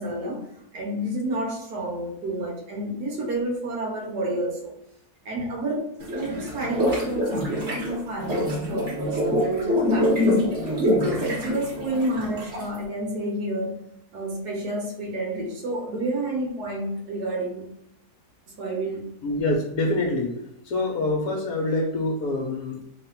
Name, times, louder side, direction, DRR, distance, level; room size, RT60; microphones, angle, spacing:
voice 1, 0.0-4.8 5.2-10.4 10.6-13.8 14.1-17.7 18.5-19.1, right 1 dB, 75° right, -1 dB, 1.4 m, -30 dB
sound 1, 6.0-12.8, left 1 dB, 45° right, 1.5 m, -25 dB
voice 2, 19.2-20.4 20.6-22.8, left 2 dB, 70° left, -1 dB, 1.2 m, -25 dB
3.3 x 2.5 x 4.3 m, 0.79 s
omnidirectional pair, 1.7 m